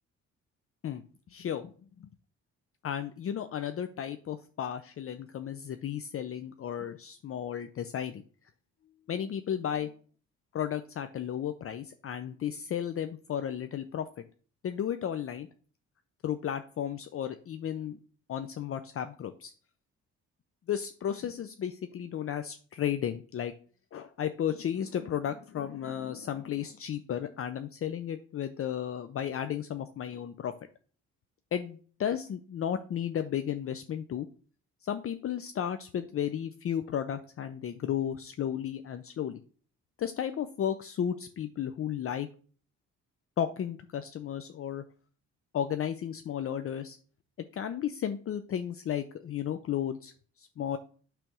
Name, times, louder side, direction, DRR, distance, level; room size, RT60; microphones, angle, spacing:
voice 1, 0.8-1.7 2.0-2.1 2.8-8.2 9.1-9.9 10.5-14.1 14.6-15.5 16.2-18.0 18.3-19.5 20.7-23.5 23.9-30.5 31.5-34.3 34.8-39.4 40.0-42.3 43.4-44.8 45.5-47.0 47.5-50.1 50.4-50.8, left 9 dB, 45° left, 9 dB, 0.6 m, -34 dB
8.9 x 3.4 x 6.1 m, 0.43 s
cardioid pair, 90°, 30 cm